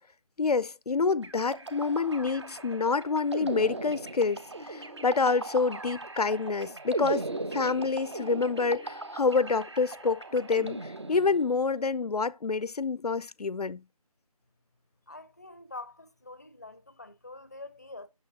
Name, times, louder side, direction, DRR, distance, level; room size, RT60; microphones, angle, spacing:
voice 1, 0.4-13.8, left 4 dB, 85° left, 0.5 m, -27 dB
sound 1, 1.2-11.7, right 2 dB, 45° right, 1.0 m, -38 dB
voice 2, 15.1-18.1, left 2 dB, 25° left, 0.6 m, -45 dB
8.8 x 6.6 x 2.8 m
figure-of-eight pair, 170°, 19 cm